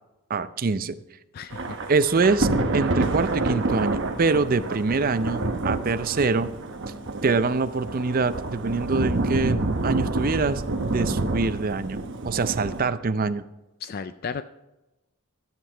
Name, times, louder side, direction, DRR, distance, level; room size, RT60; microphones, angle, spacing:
voice 1, 0.3-1.0 1.9-2.5 2.7-6.5 7.2-13.4, right 4 dB, 40° right, 12 dB, 0.5 m, -24 dB
Thunder / Rain, 1.5-12.8, right 2 dB, 55° right, 1.0 m, -28 dB
voice 2, 13.8-14.4, left 6 dB, 40° left, 11 dB, 0.3 m, -33 dB
13.0 x 7.8 x 4.4 m, 1.0 s
head